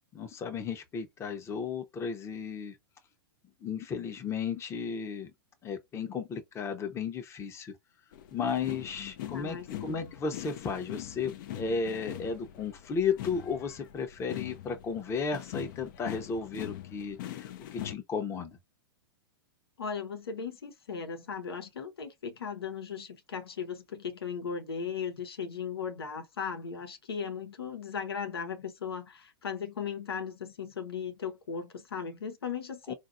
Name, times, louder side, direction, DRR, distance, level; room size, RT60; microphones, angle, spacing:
voice 1, 0.1-2.7 3.6-5.3 5.6-7.7 8.3-18.6 32.9-33.0, left 5 dB, 20° left, 0.7 m, -34 dB
sound 1, 8.1-18.0, left 12 dB, 55° left, 0.5 m, -42 dB
voice 2, 9.3-10.1 19.8-32.9, left 6 dB, 85° left, 0.9 m, -37 dB
3.9 x 2.5 x 2.5 m
hypercardioid pair, 115°, 13 cm